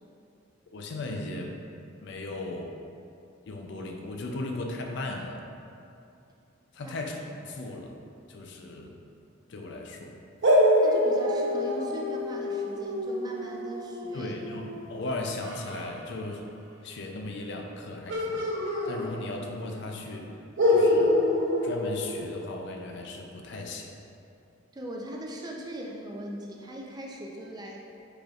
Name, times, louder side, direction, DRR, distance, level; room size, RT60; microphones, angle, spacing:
voice 1, 0.7-1.6 2.0-2.8 3.4-5.4 6.7-8.0 8.3-9.0 9.5-10.2 14.1-16.5 16.8-18.5 18.8-20.4 20.7-21.2 21.6-24.0, left 2 dB, 65° left, 2 dB, 0.5 m, -37 dB
sound 1, 10.4-15.9 18.1-19.6 19.8-19.9 20.6-22.8, left 1 dB, 75° right, 0.7 m, -26 dB
voice 2, 10.8-14.3 24.7-27.8, equal, 20° right, -1 dB, 0.4 m, -39 dB
5.2 x 4.3 x 2.4 m, 2.7 s
head